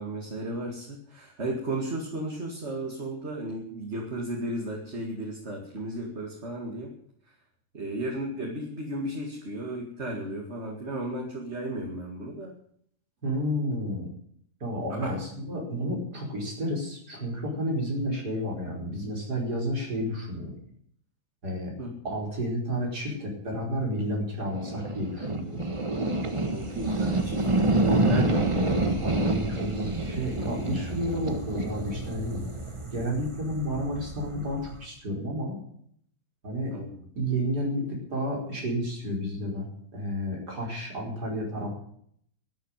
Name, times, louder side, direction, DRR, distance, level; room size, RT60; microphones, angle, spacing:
voice 1, 0.0-6.9 7.7-12.5 14.9-15.2 21.8-21.9 26.5-27.6 28.0-28.5 36.7-37.0, right 1 dB, 45° right, -1 dB, 2.6 m, -34 dB
voice 2, 13.2-14.1 14.6-20.5 21.4-21.7 22.0-25.6 27.9-32.4 32.9-35.6 36.4-36.7 37.2-39.7 39.9-41.8, equal, 85° right, -1 dB, 5.5 m, -31 dB
sound 1, 24.4-34.8, right 2 dB, 20° right, 1.3 m, -28 dB
12.5 x 10.5 x 9.1 m, 0.65 s
omnidirectional pair, 1.7 m